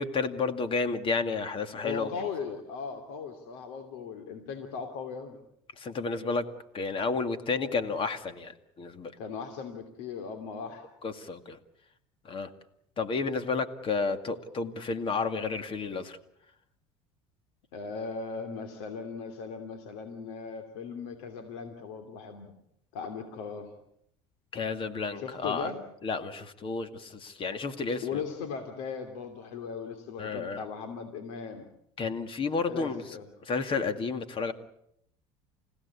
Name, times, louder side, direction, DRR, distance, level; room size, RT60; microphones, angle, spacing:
voice 1, 0.0-2.1 5.8-6.4 6.7-9.1 11.0-11.6 12.2-12.5 13.0-16.2 24.5-25.7 26.0-28.2 30.2-30.6 32.0-33.2 33.4-34.5, left 4 dB, 40° left, 10 dB, 2.3 m, -31 dB
voice 2, 1.8-5.4 9.2-10.9 17.7-22.5 22.9-23.7 25.1-25.8 28.0-31.7 32.7-33.2, left 5 dB, 80° left, 6 dB, 2.9 m, -38 dB
29.5 x 16.5 x 8.5 m, 0.75 s
supercardioid pair, 105°, 14 cm